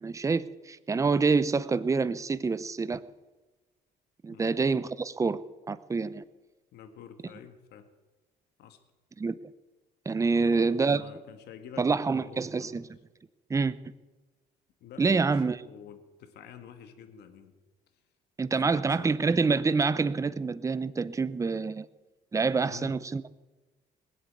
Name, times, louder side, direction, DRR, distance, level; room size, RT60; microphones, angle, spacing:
voice 1, 0.0-3.0 4.2-5.4 5.7-6.2 9.2-9.3 10.1-11.0 11.8-12.9 13.5-13.7 15.0-15.6 18.4-21.9 22.3-23.3, right 4 dB, 20° right, 15 dB, 0.7 m, -26 dB
voice 2, 4.3-4.6 6.7-7.9 8.6-8.8 10.3-12.8 14.8-17.5 18.6-19.2 22.6-23.0, left 8 dB, 75° left, 8 dB, 1.7 m, -48 dB
20.0 x 8.3 x 8.6 m, 1.2 s
cardioid pair, 110°, 17 cm